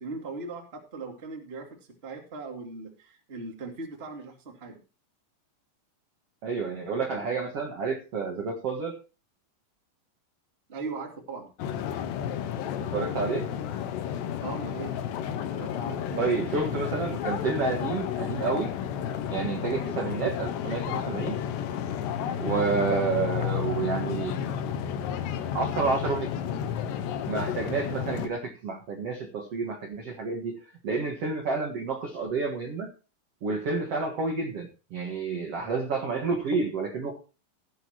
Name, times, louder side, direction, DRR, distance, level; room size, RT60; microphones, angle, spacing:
voice 1, 0.0-4.8 10.7-11.5 14.4-15.0 15.5-16.2, right 3 dB, 25° right, 2 dB, 1.2 m, -39 dB
voice 2, 6.4-9.0 12.8-13.5 16.2-18.7 19.3-21.4 22.4-24.4 25.4-26.3 27.3-32.9 33.4-37.2, right 4 dB, 70° right, 1 dB, 1.4 m, -30 dB
sound 1, 11.6-28.3, left 9 dB, 75° left, 3.0 m, -32 dB
16.5 x 10.5 x 2.9 m, 0.33 s
omnidirectional pair, 5.4 m